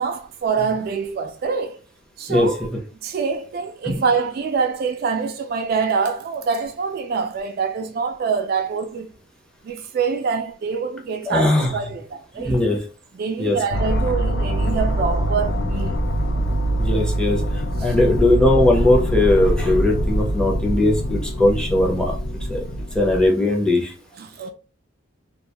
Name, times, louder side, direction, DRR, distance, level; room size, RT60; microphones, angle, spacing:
voice 1, 0.0-1.8 2.2-2.6 3.0-9.1 9.6-12.6 13.1-15.9 17.8-18.0 24.2-24.5, right 5 dB, 50° right, 0.3 m, -25 dB
voice 2, 11.3-11.7 12.4-12.8 13.4-13.6 16.8-17.4 17.8-22.2 22.5-22.6 22.9-23.9, left 2 dB, 5° left, 0.6 m, -19 dB
sound 1, 13.7-23.3, right 1 dB, 65° left, 0.5 m, -23 dB
2.4 x 2.2 x 2.8 m
head